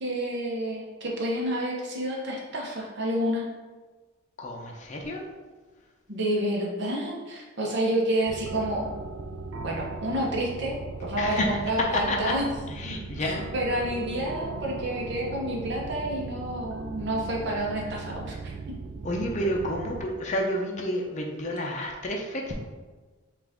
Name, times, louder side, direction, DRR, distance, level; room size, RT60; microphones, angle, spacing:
voice 1, 0.0-3.5 6.1-8.9 9.6-12.5 13.5-18.5, right 1 dB, 55° right, -2 dB, 0.9 m, -29 dB
voice 2, 4.4-5.2 11.2-12.3 12.7-13.4 19.0-22.5, left 1 dB, 35° left, 0 dB, 0.6 m, -30 dB
sound 1, 8.3-20.1, right 4 dB, 75° right, 0.4 m, -38 dB
5.7 x 2.5 x 3.6 m, 1.3 s
head